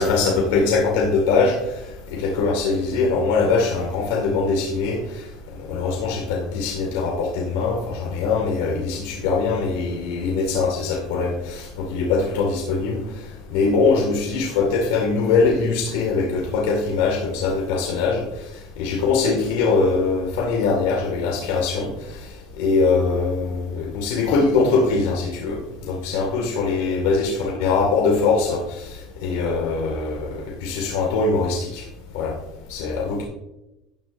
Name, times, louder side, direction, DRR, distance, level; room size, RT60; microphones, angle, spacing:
voice 1, 0.0-1.8 2.1-5.2 5.7-13.0 13.5-18.2 18.8-22.2 22.6-29.0 29.2-30.3 30.6-31.8 32.1-32.3 32.7-33.2, left 4 dB, 90° left, 0 dB, 2.1 m, -22 dB
13.5 x 10.0 x 2.7 m, 0.93 s
cardioid pair, 155°, 0 cm